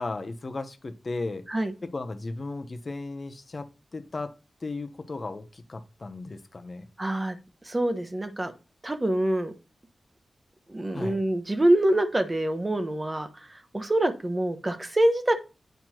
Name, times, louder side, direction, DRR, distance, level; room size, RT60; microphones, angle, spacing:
voice 1, 0.0-1.4 1.8-3.7 3.9-4.3 4.6-6.9 10.9-11.2, left 3 dB, 50° left, 0.8 m, -35 dB
voice 2, 7.0-7.4 7.6-8.5 8.8-9.5 10.7-15.3, right 1 dB, 25° right, 1.0 m, -25 dB
9.1 x 4.4 x 2.9 m
cardioid pair, 50°, 0 cm